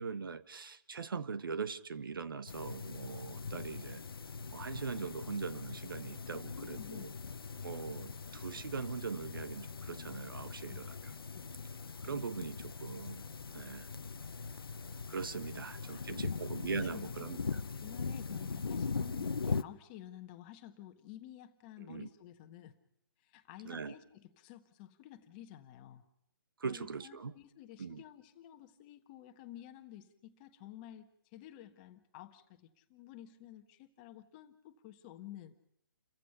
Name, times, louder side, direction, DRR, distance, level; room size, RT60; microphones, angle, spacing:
voice 1, 0.0-4.0 4.5-7.1 7.6-10.9 12.0-13.2 13.5-13.9 15.1-17.4 21.9-22.1 23.6-23.9 26.6-27.3 27.8-28.0, right 5 dB, 70° right, 13 dB, 1.3 m, -41 dB
sound 1, 2.5-19.6, left 4 dB, 85° left, 0.8 m, -41 dB
voice 2, 6.3-7.2 10.7-11.8 15.5-16.4 16.9-17.3 17.8-22.7 23.2-26.0 26.6-35.5, left 12 dB, 25° left, 7 dB, 1.3 m, -52 dB
29.5 x 15.0 x 5.8 m, 0.73 s
hypercardioid pair, 150°, 12 cm